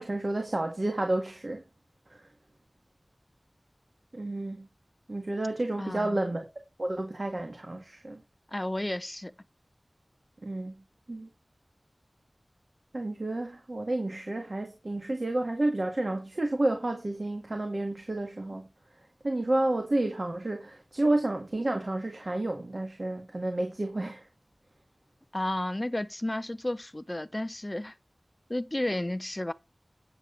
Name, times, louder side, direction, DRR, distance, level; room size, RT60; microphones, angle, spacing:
voice 1, 0.0-1.6 2.1-2.2 4.1-4.7 5.1-6.5 6.8-8.2 10.4-10.7 11.1-11.3 12.9-18.6 19.2-24.3, right 2 dB, 55° right, 1.8 m, -30 dB
voice 2, 5.8-6.2 8.5-9.3 25.3-27.9 28.5-29.5, left 1 dB, 30° left, 0.7 m, -32 dB
9.1 x 7.1 x 3.9 m
wide cardioid pair, 50°, 0 cm